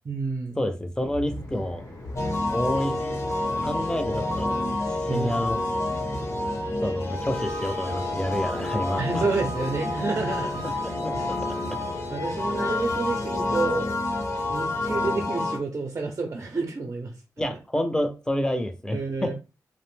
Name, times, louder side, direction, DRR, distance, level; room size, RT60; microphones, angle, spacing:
voice 1, 0.1-0.6 5.1-5.5 9.0-10.6 12.1-13.9 14.5-17.1 18.9-19.3, right 3 dB, 45° right, 2 dB, 0.6 m, -29 dB
voice 2, 0.6-1.8 2.5-3.2 3.6-4.5 5.1-5.6 6.8-9.3 10.6-11.1 11.5-11.8 17.4-19.3, left 1 dB, 10° left, 7 dB, 0.5 m, -29 dB
sound 1, 0.9-15.3, left 1 dB, 75° left, 0.9 m, -39 dB
sound 2, 2.1-15.6, left 2 dB, 50° left, 0.7 m, -29 dB
2.5 x 2.0 x 3.2 m, 0.31 s
cardioid pair, 55°, 7 cm